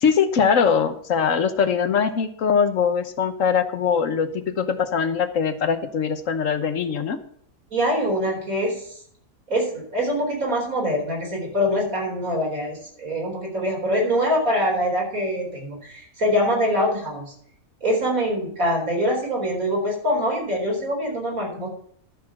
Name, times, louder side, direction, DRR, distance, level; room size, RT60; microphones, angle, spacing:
voice 1, 0.0-7.2, left 6 dB, 65° left, 10 dB, 1.3 m, -22 dB
voice 2, 7.7-9.0 9.5-17.3 17.8-21.7, equal, 75° right, -1 dB, 4.6 m, -24 dB
12.0 x 6.7 x 5.8 m, 0.62 s
omnidirectional pair, 1.5 m